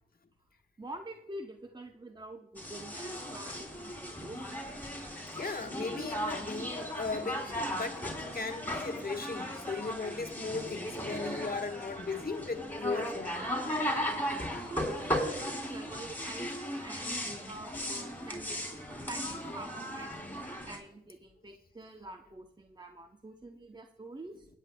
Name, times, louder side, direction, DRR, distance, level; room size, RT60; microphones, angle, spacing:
voice 1, 0.8-4.4 14.7-20.1 20.7-24.5, right 2 dB, 20° right, 0.8 m, -46 dB
Fishmonger's at Mercat de Sant Carles, 2.6-20.8, equal, 10° left, 3.2 m, -37 dB
voice 2, 5.3-13.4, left 4 dB, 45° left, 1.3 m, -37 dB
20.5 x 9.2 x 2.2 m
cardioid pair, 45°, 21 cm